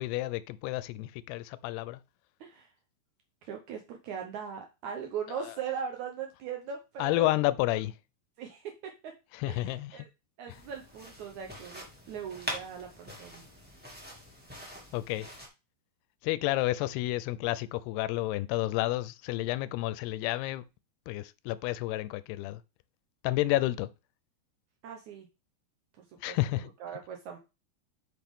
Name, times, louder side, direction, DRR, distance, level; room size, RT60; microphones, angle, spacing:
voice 1, 0.0-2.0 7.0-7.9 9.3-10.1 10.5-10.6 14.9-15.3 16.2-20.6 21.1-22.6 23.2-23.9 26.2-26.7, left 17 dB, 80° left, 2.5 m, -30 dB
voice 2, 3.5-7.3 8.4-9.1 9.5-10.1 10.4-13.4 24.8-25.3 26.3-26.4 26.8-27.4, right 7 dB, 85° right, 1.6 m, -39 dB
sound 1, 10.5-15.5, equal, 10° right, 0.6 m, -44 dB
8.5 x 5.8 x 3.6 m
omnidirectional pair, 4.8 m